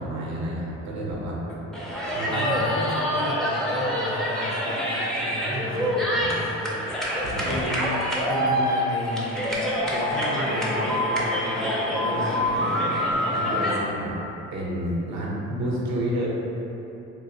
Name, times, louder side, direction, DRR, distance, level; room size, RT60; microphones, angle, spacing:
voice 1, 0.0-1.4 2.2-2.5 5.4-6.3 7.2-7.6 13.3-14.2 14.5-16.3, right 1 dB, 65° right, -4 dB, 0.7 m, -30 dB
sound 1, 1.7-13.8, equal, ahead, 0.5 m, -26 dB
voice 2, 2.1-6.7 7.5-8.0 8.3-9.5 9.9-13.8, left 1 dB, 45° left, -2 dB, 0.6 m, -33 dB
3.6 x 2.4 x 2.7 m, 3.0 s
cardioid pair, 90°, 30 cm